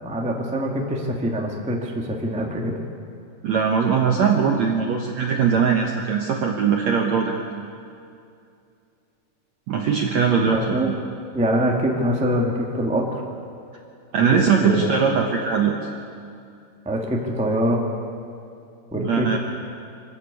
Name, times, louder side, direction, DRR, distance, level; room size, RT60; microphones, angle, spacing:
voice 1, 0.0-2.8 10.5-10.9 11.3-13.2 14.6-14.9 16.8-17.8 18.9-19.4, equal, 5° right, 0 dB, 0.9 m, -24 dB
voice 2, 3.4-7.7 9.7-10.9 14.1-15.7 18.9-19.4, right 6 dB, 65° right, 1 dB, 1.8 m, -21 dB
26.5 x 13.5 x 8.5 m, 2.5 s
omnidirectional pair, 4.7 m